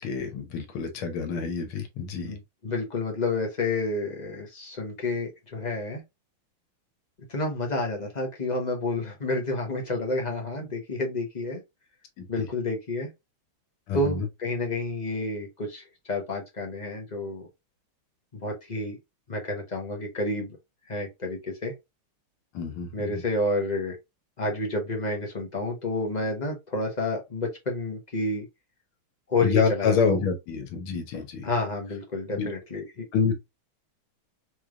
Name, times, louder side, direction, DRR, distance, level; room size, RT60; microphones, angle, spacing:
voice 1, 0.0-2.3 12.2-12.5 13.9-14.3 22.5-23.2 29.4-31.5 32.3-32.5 33.1-33.3, left 5 dB, 80° left, 1.8 m, -27 dB
voice 2, 2.2-6.0 7.3-11.6 12.3-13.1 13.9-17.5 18.3-19.0 19.3-20.6 20.9-21.7 22.9-24.0 24.4-28.5 29.3-30.2 31.4-33.1, left 2 dB, 35° left, 0.7 m, -30 dB
4.3 x 3.3 x 2.4 m
omnidirectional pair, 2.3 m